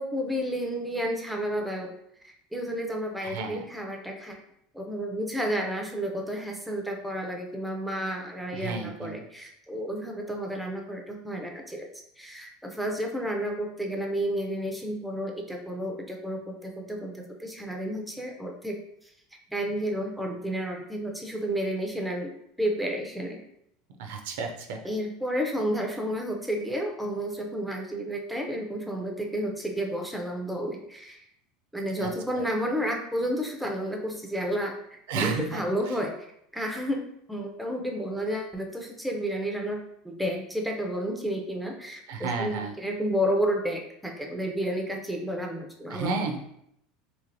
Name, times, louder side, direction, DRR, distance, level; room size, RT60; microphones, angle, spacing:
voice 1, 0.0-1.9 2.5-4.4 4.7-11.9 12.2-18.8 19.5-22.3 22.6-23.4 24.8-31.2 31.7-36.3 36.5-39.8 40.0-46.1, equal, ahead, 1 dB, 0.4 m, -31 dB
voice 2, 3.2-3.7 8.5-9.2 24.0-24.8 32.0-32.4 35.1-36.0 42.1-42.7 45.9-46.4, right 4 dB, 80° right, 4 dB, 0.5 m, -32 dB
3.1 x 2.7 x 2.5 m, 0.75 s
supercardioid pair, 155°, 0 cm